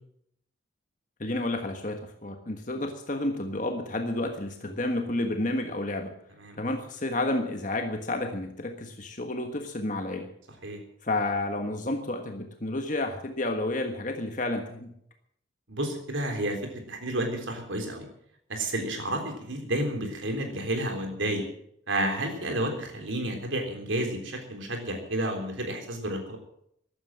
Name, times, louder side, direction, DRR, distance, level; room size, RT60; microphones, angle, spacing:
voice 1, 1.2-6.1 6.6-10.3 11.0-14.9, left 2 dB, 45° left, 4 dB, 1.5 m, -30 dB
voice 2, 15.7-18.1 18.5-21.5 21.9-26.4, right 1 dB, 90° right, 4 dB, 3.7 m, -31 dB
15.5 x 11.5 x 7.5 m, 0.71 s
head